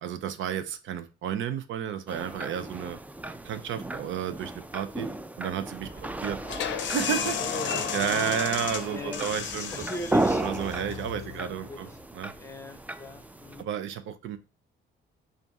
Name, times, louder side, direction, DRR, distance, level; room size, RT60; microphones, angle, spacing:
voice 1, 0.0-3.0 3.4-5.1 5.4-5.9 6.2-6.4 6.9-7.4 7.9-9.8 10.4-11.9 12.1-12.3 13.6-14.4, right 9 dB, 80° right, 11 dB, 0.6 m, -31 dB
sound 1, 2.1-13.6, right 2 dB, 10° right, 0.3 m, -35 dB
Fixed-wing aircraft airplane, 5.7-11.4, right 3 dB, 55° right, 1.3 m, -46 dB
sound 2, 6.4-11.9, left 9 dB, 70° left, 0.5 m, -34 dB
voice 2, 7.4-8.4 8.9-9.3 9.5-10.4 11.1-11.2 11.5-12.0 12.4-13.7, left 1 dB, 15° left, 7 dB, 0.8 m, -40 dB
3.4 x 2.5 x 4.0 m, 0.31 s
cardioid pair, 90°, 20 cm